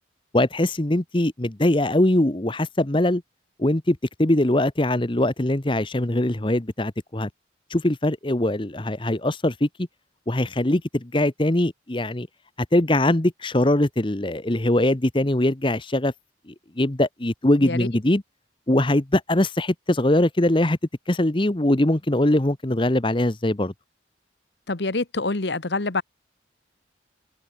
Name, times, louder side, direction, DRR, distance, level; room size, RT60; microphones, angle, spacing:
voice 1, 0.3-3.2 3.6-7.3 7.7-9.9 10.3-12.3 12.7-16.1 16.5-18.2 18.7-20.8 21.1-23.7, left 1 dB, 25° left, 1.0 m, -22 dB
voice 2, 24.7-26.0, left 3 dB, 65° left, 1.3 m, -26 dB
open air
head